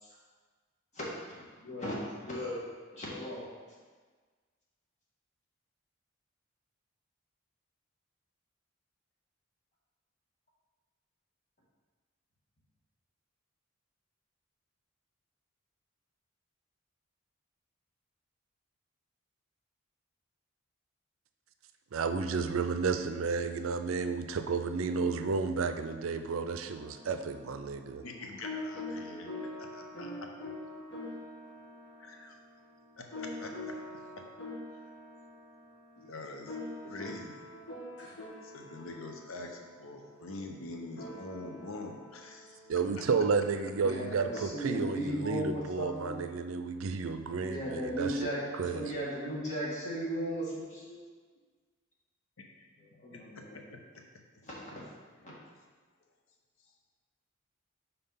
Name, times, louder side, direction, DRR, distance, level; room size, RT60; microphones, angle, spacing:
voice 1, 1.6-2.6 2.9-3.5 41.0-41.2 43.7-46.2 47.4-51.0 53.0-53.6 54.5-54.6 55.2-55.3, equal, 35° left, -5 dB, 1.7 m, -36 dB
voice 2, 21.9-28.0 42.7-48.2 48.5-48.9, right 5 dB, 80° right, 9 dB, 0.4 m, -32 dB
sound 1, 26.6-44.5, left 2 dB, 55° left, 1.4 m, -45 dB
voice 3, 28.0-30.5 32.0-32.4 33.0-33.5 34.2-34.3 34.7-34.8 36.0-36.6 36.8-37.4 38.4-42.6 52.4-54.0 54.4-54.5, left 2 dB, 85° left, 3 dB, 0.8 m, -45 dB
5.6 x 4.1 x 5.6 m, 1.4 s
head